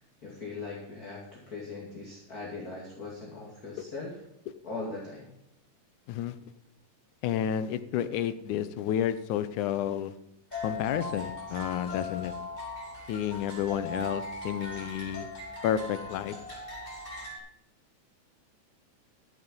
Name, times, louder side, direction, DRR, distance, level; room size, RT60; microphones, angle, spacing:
voice 1, 0.0-4.2 4.6-5.3, left 3 dB, 30° left, -3 dB, 2.5 m, -40 dB
voice 2, 7.2-10.1 10.6-12.3 13.1-15.3 15.6-16.4, left 10 dB, 75° left, 12 dB, 2.1 m, -30 dB
sound 1, 10.5-17.4, left 2 dB, 15° left, 4.9 m, -39 dB
13.5 x 7.9 x 5.4 m, 0.80 s
omnidirectional pair, 3.8 m